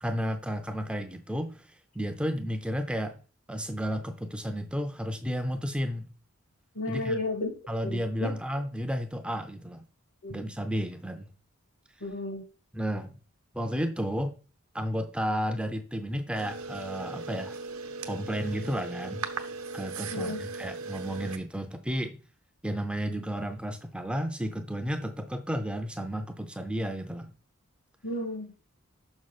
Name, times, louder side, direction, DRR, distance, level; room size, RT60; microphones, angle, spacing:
voice 1, 0.0-3.2 3.5-6.1 6.9-7.2 7.7-9.8 10.3-11.3 12.7-13.2 13.5-14.3 14.7-17.6 18.1-19.2 19.7-22.2 22.6-27.3, equal, 5° right, 0.4 m, -32 dB
voice 2, 6.7-7.5 7.8-8.3 10.2-10.4 12.0-12.4 20.1-20.4 28.0-28.5, left 2 dB, 85° left, 2.3 m, -32 dB
sound 1, 16.3-21.4, right 4 dB, 70° right, 0.8 m, -38 dB
6.2 x 5.0 x 4.1 m
head